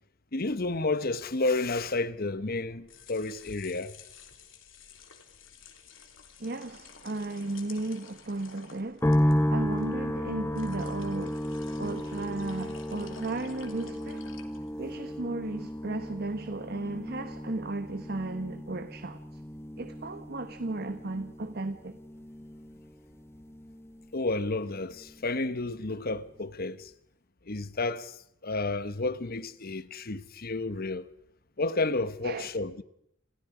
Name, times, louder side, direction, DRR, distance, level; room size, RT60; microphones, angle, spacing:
voice 1, 0.3-3.9 24.1-26.9 27.5-31.1 31.6-32.8, left 2 dB, 50° left, 1.1 m, -31 dB
sound 1, 2.7-15.0, left 6 dB, 70° left, 3.5 m, -52 dB
voice 2, 6.4-9.1 9.5-11.4 11.8-14.3 14.8-19.2 19.8-22.0 32.2-32.5, right 2 dB, 50° right, 1.2 m, -35 dB
sound 2, 9.0-24.3 24.5-25.4, equal, 15° left, 1.0 m, -33 dB
30.0 x 28.5 x 5.0 m
head